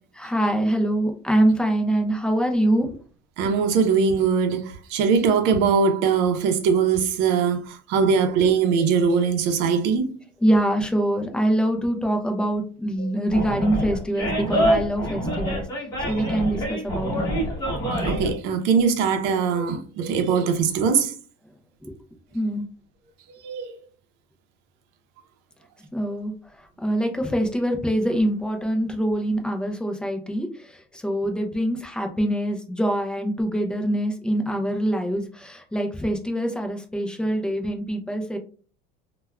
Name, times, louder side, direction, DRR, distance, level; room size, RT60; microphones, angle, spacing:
voice 1, 0.1-3.0 7.9-8.0 10.4-15.7 16.1-17.3 21.8-21.9 22.3-22.7 25.9-38.4, right 1 dB, 5° left, 0.4 m, -24 dB
voice 2, 3.4-10.1 13.4-13.5 16.0-16.4 17.9-21.2 23.4-23.8, right 6 dB, 70° right, 0.6 m, -21 dB
Animal, 13.3-18.3, right 1 dB, 20° left, 1.1 m, -26 dB
3.3 x 2.2 x 2.3 m
cardioid pair, 140°, 19 cm